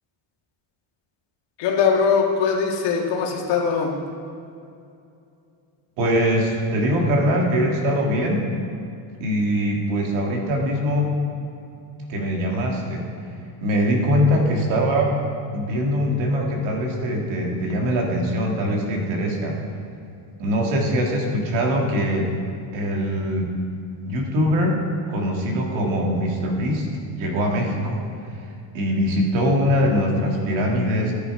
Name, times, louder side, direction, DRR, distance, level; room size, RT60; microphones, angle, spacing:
voice 1, 1.6-3.9, left 6 dB, 60° left, -1 dB, 2.1 m, -21 dB
voice 2, 6.0-8.5 9.2-11.2 12.1-13.0 13.6-15.2 15.5-19.6 20.4-22.3 22.7-23.5 24.1-24.8 25.1-26.9 27.2-28.0 28.7-31.1, equal, 70° right, 0 dB, 2.5 m, -22 dB
13.0 x 10.5 x 4.8 m, 2.5 s
cardioid pair, 165°, 49 cm